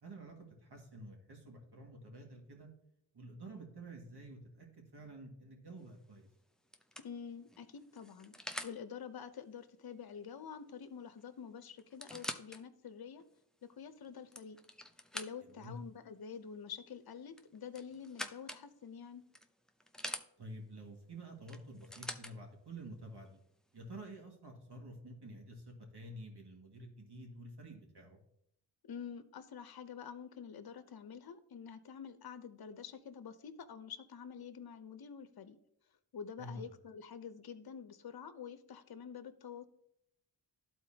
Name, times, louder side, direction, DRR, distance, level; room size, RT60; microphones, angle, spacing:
voice 1, 0.0-2.7 3.1-6.3 15.4-15.8 20.4-23.4 23.7-28.2 36.4-36.7, right 1 dB, 55° right, 1 dB, 2.1 m, -50 dB
sound 1, 5.8-6.1 6.7-8.8 10.8-10.9 11.2-11.3 11.8-12.6 13.2-13.3 14.0-15.6 17.3-18.6 19.3-20.3 21.5-22.3 23.3-23.4, left 1 dB, ahead, 0.7 m, -45 dB
voice 2, 7.0-8.3 8.6-13.2 13.6-14.6 15.1-19.2 28.8-35.6 36.1-39.7, left 7 dB, 50° left, 11 dB, 0.8 m, -48 dB
12.0 x 4.3 x 2.9 m, 0.74 s
cardioid pair, 40°, 48 cm